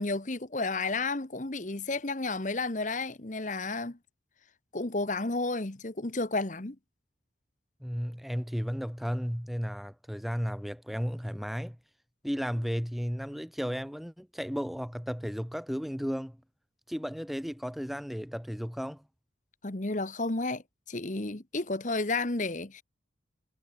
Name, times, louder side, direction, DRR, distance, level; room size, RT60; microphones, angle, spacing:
voice 1, 0.0-4.0 4.7-6.8 19.6-22.8, left 3 dB, 40° left, 1.2 m, -32 dB
voice 2, 7.8-11.8 12.2-16.4 16.9-19.0, equal, ahead, 1.7 m, -34 dB
head